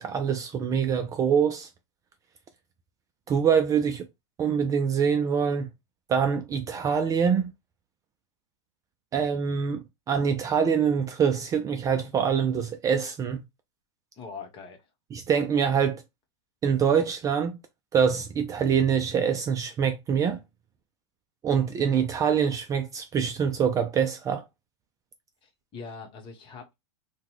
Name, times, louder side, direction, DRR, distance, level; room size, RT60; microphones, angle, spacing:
voice 1, 0.0-1.7 3.3-4.1 4.4-5.7 6.1-7.5 9.1-13.4 15.1-16.0 16.6-17.6 17.9-20.4 21.4-24.4, right 7 dB, 20° right, 0.4 m, -25 dB
voice 2, 14.2-14.9 25.4-26.7, left 5 dB, 35° left, 1.0 m, -42 dB
3.8 x 2.2 x 3.0 m
hypercardioid pair, 125°, 16 cm